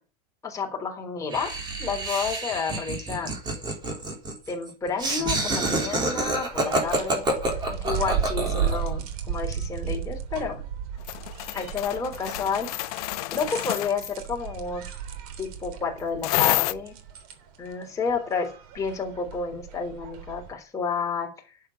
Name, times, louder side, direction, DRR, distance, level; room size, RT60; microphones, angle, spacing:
voice 1, 0.4-1.5 1.8-3.3 4.5-7.3 7.7-10.6 11.5-12.7 13.3-14.8 15.4-16.9 17.6-18.5 18.7-21.3, left 5 dB, 15° left, 1 dB, 3.7 m, -30 dB
Laughter, 1.3-8.9, right 2 dB, 20° right, 3.8 m, -28 dB
sound 1, 6.4-20.5, right 8 dB, 60° right, 3.3 m, -34 dB
sound 2, 11.1-14.1 16.2-16.7, left 19 dB, 65° left, 0.6 m, -28 dB
12.0 x 8.1 x 8.7 m, 0.37 s
supercardioid pair, 160°, 21 cm